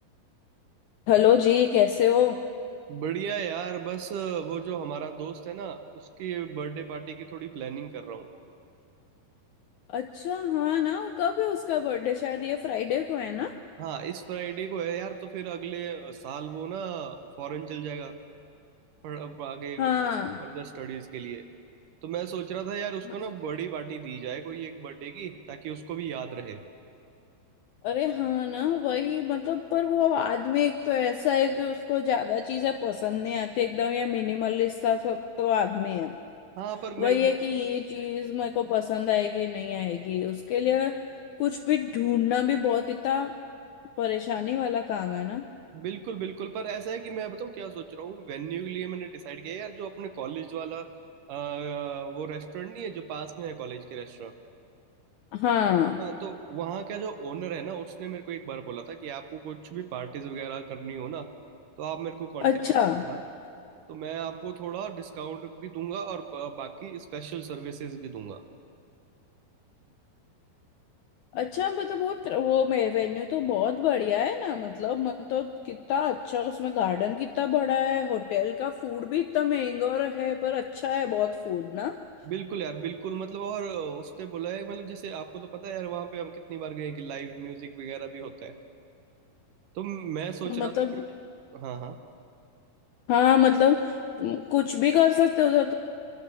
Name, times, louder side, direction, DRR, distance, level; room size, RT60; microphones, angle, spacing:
voice 1, 1.1-2.4 9.9-13.5 19.8-20.4 27.8-36.1 37.0-41.0 41.4-43.3 44.0-45.5 55.3-56.0 62.4-63.0 71.3-82.0 90.5-91.0 93.1-95.7, left 10 dB, 80° left, 7 dB, 1.7 m, -26 dB
voice 2, 2.9-8.3 13.8-18.1 19.0-20.0 20.4-21.5 22.0-26.6 36.6-37.3 45.7-50.9 51.3-54.3 56.0-61.3 61.8-62.5 63.0-63.2 63.9-68.4 82.2-88.6 89.8-91.1 91.5-92.0, right 8 dB, 70° right, 8 dB, 2.4 m, -35 dB
24.5 x 24.5 x 6.9 m, 2.5 s
omnidirectional pair, 4.2 m